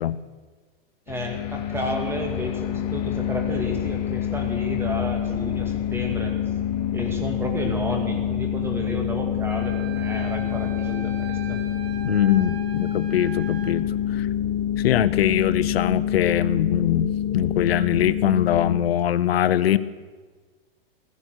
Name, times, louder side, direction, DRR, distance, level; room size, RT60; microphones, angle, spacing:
sound 1, 1.1-18.8, left 10 dB, 45° left, 1.0 m, -27 dB
voice 1, 1.1-6.4 6.9-11.6, equal, 10° right, 3 dB, 2.1 m, -31 dB
Wind instrument woodwind instrument, 9.5-13.8, right 6 dB, 80° right, 2.1 m, -40 dB
voice 2, 12.0-14.3 14.8-19.8, left 11 dB, 80° left, 16 dB, 0.7 m, -22 dB
16.0 x 14.0 x 6.3 m, 1.4 s
hypercardioid pair, 150°, 30 cm